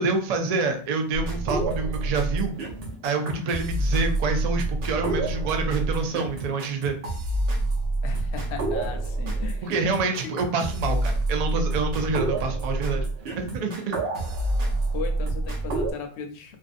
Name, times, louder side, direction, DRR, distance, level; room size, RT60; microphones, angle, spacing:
voice 1, 0.0-2.6 3.0-7.0 9.6-13.0 13.4-13.9, right 4 dB, 75° right, 4 dB, 0.3 m, -27 dB
sound 1, 1.1-15.9, right 2 dB, 60° right, 0.9 m, -27 dB
voice 2, 8.0-9.7 10.2-10.4 14.9-16.6, left 5 dB, 70° left, 4 dB, 0.8 m, -36 dB
2.5 x 2.2 x 2.4 m, 0.42 s
omnidirectional pair, 1.2 m